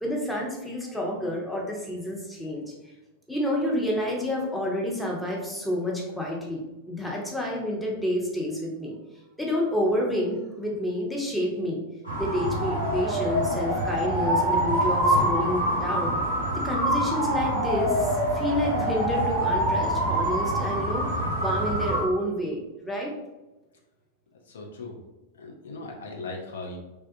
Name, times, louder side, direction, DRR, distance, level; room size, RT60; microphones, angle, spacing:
voice 1, 0.0-2.7 3.3-6.6 6.9-8.9 9.4-11.8 12.1-16.2 16.5-23.1, equal, 5° left, -2 dB, 0.6 m, -29 dB
sound 1, 12.0-22.0, right 1 dB, 80° left, 1.0 m, -25 dB
voice 2, 24.3-25.0 25.3-26.8, left 3 dB, 65° left, 0 dB, 0.5 m, -38 dB
3.3 x 2.3 x 2.6 m, 1.1 s
figure-of-eight pair, 90°, 0 cm